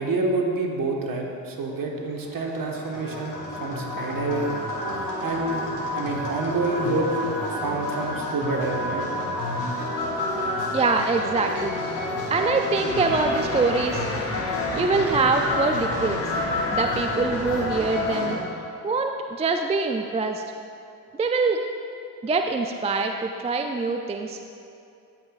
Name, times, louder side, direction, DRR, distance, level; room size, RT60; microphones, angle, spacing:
voice 1, 0.0-4.5 5.2-5.6 5.9-9.1, right 2 dB, 45° right, 0 dB, 1.5 m, -27 dB
sound 1, 2.2-18.4, left 2 dB, 70° left, 1.8 m, -29 dB
voice 2, 10.7-11.8 12.3-14.1 14.7-16.3 16.7-18.4 18.8-20.4 21.2-21.6 22.2-24.4, right 4 dB, 15° right, 4 dB, 0.3 m, -24 dB
sound 2, 12.9-18.2, left 3 dB, 30° left, 1.0 m, -34 dB
13.5 x 5.7 x 2.5 m, 2.6 s
hypercardioid pair, 50°, 45 cm